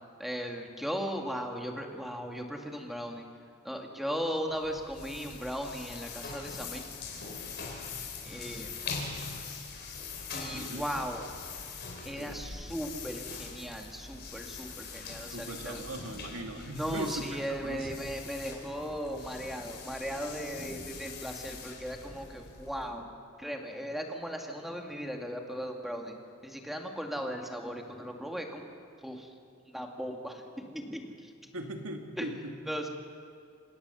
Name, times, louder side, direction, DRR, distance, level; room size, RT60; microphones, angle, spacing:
voice 1, 0.2-3.3 3.6-6.8 8.2-8.7 10.3-11.3 12.1-15.8 16.8-23.0 23.4-26.1 26.4-28.6 29.0-29.3 29.7-31.1 32.2-32.3 32.7-32.9, equal, ahead, 2 dB, 2.1 m, -37 dB
sound 1, 4.5-22.9, left 4 dB, 55° left, 4.4 m, -42 dB
voice 2, 15.3-17.9 31.5-32.6, right 1 dB, 70° right, 3 dB, 2.4 m, -39 dB
27.5 x 17.5 x 7.0 m, 2.4 s
head